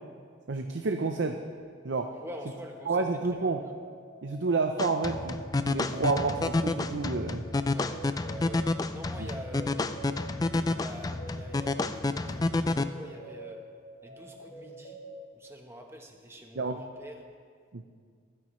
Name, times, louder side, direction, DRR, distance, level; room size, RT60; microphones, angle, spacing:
voice 1, 0.5-1.4 1.8-2.1 2.9-3.6 4.2-7.4 9.2-9.3 16.6-16.8 17.7-17.8, right 3 dB, 65° right, 5 dB, 0.6 m, -29 dB
sound 1, 2.0-15.2, right 1 dB, 90° left, 2.1 m, -47 dB
voice 2, 2.1-3.0 3.3-3.6 7.6-10.0 10.7-13.7 14.0-15.0 15.3-17.3, equal, 15° right, 3 dB, 1.0 m, -46 dB
sound 2, 4.8-12.8, left 2 dB, 20° left, 0.3 m, -29 dB
24.5 x 10.0 x 3.1 m, 2.1 s
head